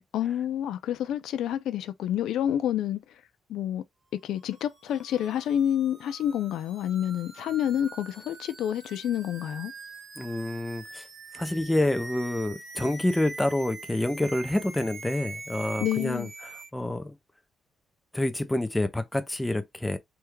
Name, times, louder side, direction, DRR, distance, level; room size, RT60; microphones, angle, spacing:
voice 1, 0.0-3.0 3.5-3.8 4.2-9.7 15.8-16.3, left 10 dB, 85° left, 0.3 m, -28 dB
sound 1, 4.4-16.7, right 3 dB, 35° right, 0.6 m, -44 dB
voice 2, 10.2-11.1 11.3-17.1 18.1-20.0, left 1 dB, 5° left, 0.4 m, -28 dB
3.4 x 2.2 x 3.1 m
cardioid pair, 140°, 0 cm